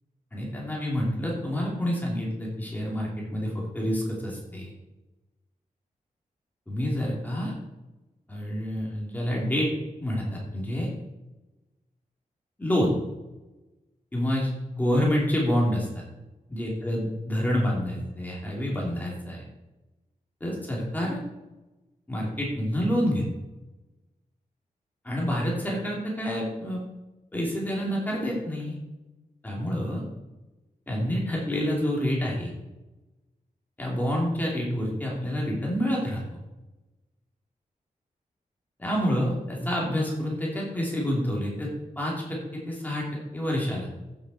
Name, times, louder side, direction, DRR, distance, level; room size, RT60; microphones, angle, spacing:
voice 1, 0.3-4.7 6.7-7.5 8.3-9.7 10.0-10.9 12.6-12.9 14.1-15.9 16.5-19.4 20.4-21.2 22.1-23.2 25.0-26.8 27.3-28.8 29.4-30.0 30.9-32.5 33.8-36.2 38.8-41.7 42.0-43.0 43.3-43.9, equal, 10° left, -3 dB, 2.8 m, -28 dB
14.5 x 7.4 x 4.2 m, 1.0 s
wide cardioid pair, 180°, 14 cm